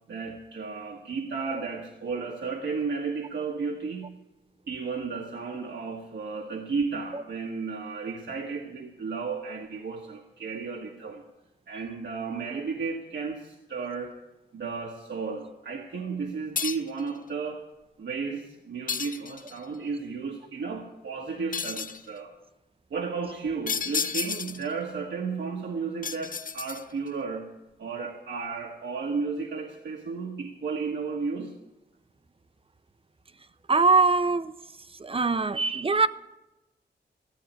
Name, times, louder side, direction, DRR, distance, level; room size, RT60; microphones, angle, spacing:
voice 1, 0.1-4.2 4.7-11.2 11.7-14.2 14.5-17.7 18.0-22.3 22.9-27.5 27.8-31.5, right 4 dB, 80° right, 1 dB, 1.5 m, -33 dB
sound 1, 16.6-17.0 18.9-19.6 21.5-22.1 23.7-24.7 26.0-27.1, left 6 dB, 50° left, 0.7 m, -32 dB
voice 2, 33.7-34.5 35.0-36.1, right 4 dB, 30° right, 13 dB, 0.7 m, -22 dB
15.0 x 7.9 x 9.8 m, 1.0 s
cardioid pair, 75°, 18 cm